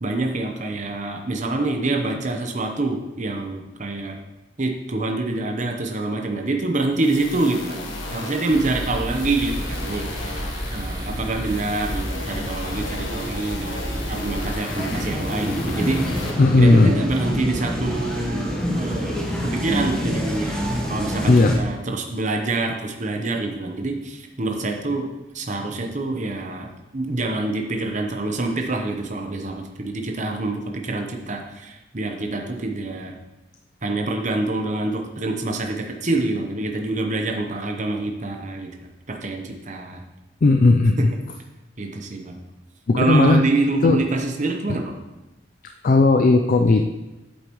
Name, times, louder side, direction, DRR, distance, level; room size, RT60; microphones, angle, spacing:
voice 1, 0.0-4.2 4.6-7.8 8.1-16.3 16.6-25.1 25.3-33.1 33.8-38.7 39.1-40.0 41.0-41.1 41.8-42.4 43.0-45.0, right 2 dB, 40° right, 3 dB, 0.9 m, -26 dB
sound 1, 6.9-16.3, left 2 dB, 80° left, 1.3 m, -35 dB
sound 2, 8.5-14.6, equal, 20° right, 1.1 m, -31 dB
sound 3, 14.7-21.6, equal, 5° left, 1.1 m, -26 dB
voice 2, 16.4-16.9 21.3-21.6 40.4-41.1 42.9-43.4 43.8-44.0 45.8-46.8, left 3 dB, 45° left, 5 dB, 0.4 m, -15 dB
8.7 x 7.8 x 3.1 m, 1.0 s
head